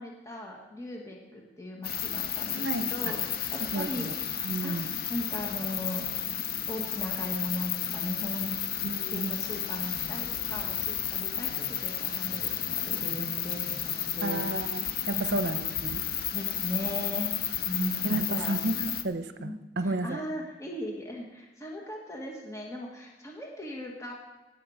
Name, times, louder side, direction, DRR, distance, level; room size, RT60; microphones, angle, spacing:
voice 1, 0.0-4.1 4.6-6.1 6.7-8.6 9.1-14.4 15.1-15.6 16.3-17.3 17.6-18.6 19.4-24.1, left 1 dB, 20° left, -1 dB, 1.7 m, -38 dB
sound 1, 1.8-19.0, left 10 dB, 60° left, 0.8 m, -32 dB
voice 2, 2.5-2.9 3.7-4.1 4.4-4.9 8.8-9.4 14.2-16.0 17.8-20.2, right 2 dB, 70° right, 9 dB, 0.8 m, -32 dB
sound 2, 9.8-11.2 11.5-14.7, equal, 5° right, 2.3 m, -51 dB
17.5 x 7.8 x 4.9 m, 1.1 s
head